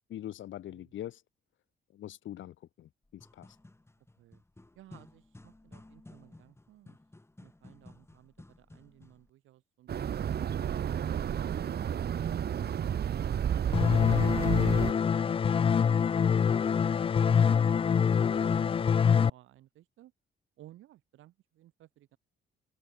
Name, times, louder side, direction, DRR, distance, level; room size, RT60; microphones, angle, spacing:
voice 1, 0.1-1.2 1.9-3.5, left 12 dB, 75° left, 3.9 m, -43 dB
sound 1, 3.0-9.3, left 2 dB, 15° left, 7.2 m, -55 dB
voice 2, 4.7-7.0 7.4-13.1 17.5-20.1 20.6-22.2, right 14 dB, 85° right, 6.2 m, -59 dB
sound 2, 9.9-14.9, right 9 dB, 55° right, 1.4 m, -31 dB
sound 3, 13.7-19.3, left 7 dB, 30° left, 0.4 m, -25 dB
open air
cardioid pair, 90°, 20 cm